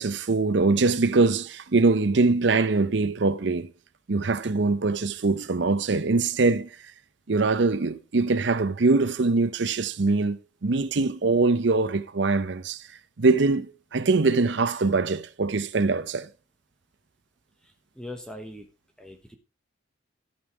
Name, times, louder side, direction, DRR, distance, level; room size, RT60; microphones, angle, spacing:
voice 1, 0.0-3.7 4.1-6.7 7.3-12.8 13.2-16.3, right 3 dB, 65° right, 0.6 m, -23 dB
voice 2, 17.6-18.7 19.0-19.4, left 1 dB, 5° left, 1.1 m, -41 dB
13.5 x 5.4 x 4.7 m
head